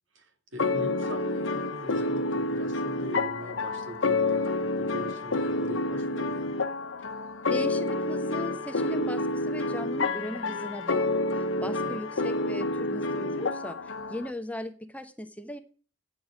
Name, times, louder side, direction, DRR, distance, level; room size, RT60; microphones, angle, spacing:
voice 1, 0.1-6.5 11.6-12.0, right 1 dB, 75° right, 5 dB, 2.3 m, -42 dB
sound 1, 0.6-14.3, left 2 dB, 75° left, 1.0 m, -29 dB
voice 2, 7.5-13.8 14.1-15.6, left 1 dB, 10° left, 8 dB, 0.9 m, -38 dB
9.7 x 7.2 x 7.2 m, 0.39 s
head